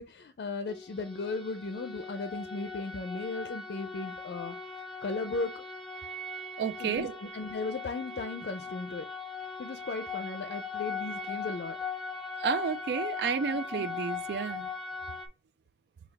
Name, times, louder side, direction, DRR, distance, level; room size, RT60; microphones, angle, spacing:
voice 1, 0.0-4.5 5.0-5.6 6.8-9.1 9.6-11.8 13.5-13.6, left 3 dB, 65° left, 0.4 m, -36 dB
sound 1, 0.7-15.3, left 4 dB, ahead, 0.5 m, -39 dB
voice 2, 6.6-7.2 12.4-14.7, right 6 dB, 65° right, 0.3 m, -31 dB
5.7 x 2.3 x 3.4 m
head